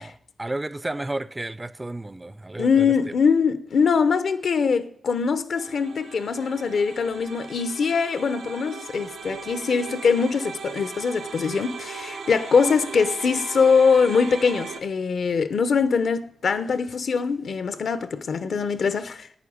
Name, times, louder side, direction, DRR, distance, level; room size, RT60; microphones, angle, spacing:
voice 1, 0.0-3.1, right 2 dB, 15° right, 0.5 m, -32 dB
voice 2, 2.6-19.3, left 5 dB, 70° left, 0.9 m, -22 dB
sound 1, 5.6-14.8, right 5 dB, 85° right, 2.0 m, -38 dB
11.5 x 9.3 x 8.7 m
wide cardioid pair, 120°, 0 cm